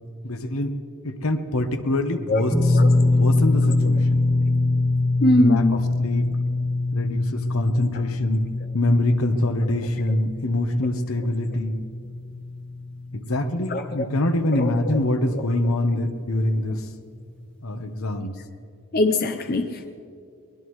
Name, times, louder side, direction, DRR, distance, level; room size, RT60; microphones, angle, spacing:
voice 1, 0.2-0.8 1.0-2.5 3.1-4.2 5.4-6.3 6.9-8.4 8.7-11.8 13.1-16.9 17.6-18.4, left 1 dB, 75° left, 8 dB, 1.1 m, -24 dB
voice 2, 2.3-2.9 3.6-3.9 5.2-5.8 7.9-8.1 9.6-9.7 10.1-10.2 11.2-11.3 13.7-14.1 14.5-15.0 15.3-15.5 18.9-19.9, left 1 dB, 45° left, 6 dB, 0.7 m, -23 dB
sound 1, 2.5-14.7 15.0-15.2 16.9-17.0, left 2 dB, 5° left, 1.4 m, -24 dB
22.5 x 20.5 x 3.2 m, 2.5 s
head